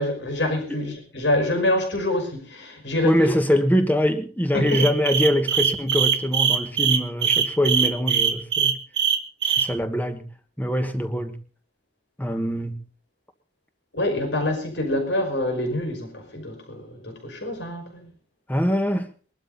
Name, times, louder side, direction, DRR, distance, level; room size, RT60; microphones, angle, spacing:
voice 1, 0.0-3.3 4.5-4.9 13.9-18.1, left 1 dB, 85° left, 5 dB, 5.7 m, -26 dB
voice 2, 3.0-8.8 9.4-10.3 10.6-11.4 12.2-12.8 18.5-19.1, equal, 10° left, 8 dB, 1.4 m, -23 dB
sound 1, 4.7-9.7, right 7 dB, 75° right, 1.5 m, -21 dB
22.0 x 12.0 x 4.0 m, 0.37 s
head